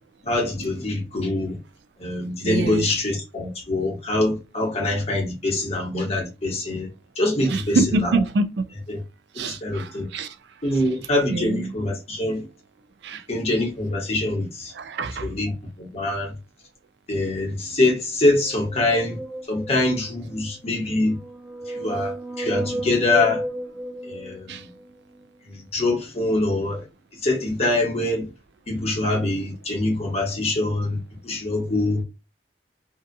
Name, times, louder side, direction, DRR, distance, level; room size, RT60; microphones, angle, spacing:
voice 1, 0.2-1.6 2.0-6.9 7.2-8.1 8.9-9.0 9.3-10.1 10.6-12.5 13.3-14.7 15.2-15.5 15.8-16.3 17.1-19.2 19.5-21.2 21.7-23.4 24.0-24.7 25.5-26.8 27.2-28.3 28.7-31.0 31.2-32.0, left 2 dB, 35° left, 1.1 m, -24 dB
voice 2, 2.4-2.9 7.5-8.5 9.4-10.3 11.3-11.7 13.0-13.2 14.7-15.3 24.5-24.6, right 3 dB, 70° right, 0.4 m, -25 dB
sound 1, 18.5-20.1 20.9-24.8, right 1 dB, 10° right, 0.8 m, -33 dB
2.7 x 2.3 x 2.5 m
head